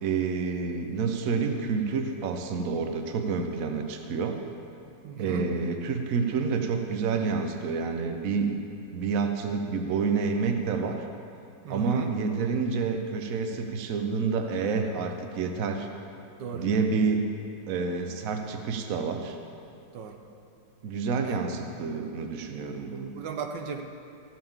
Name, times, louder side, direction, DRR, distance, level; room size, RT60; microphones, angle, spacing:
voice 1, 0.0-4.4 5.2-8.6 8.9-11.0 11.7-15.9 16.5-17.3 17.7-19.4 20.8-23.1, right 5 dB, 55° right, 5 dB, 1.1 m, -28 dB
voice 2, 5.0-5.6 11.6-12.1 16.4-16.6 19.9-20.2 21.2-21.4 23.1-23.8, right 7 dB, 75° right, 4 dB, 1.4 m, -36 dB
15.0 x 5.8 x 7.2 m, 2.6 s
omnidirectional pair, 2.0 m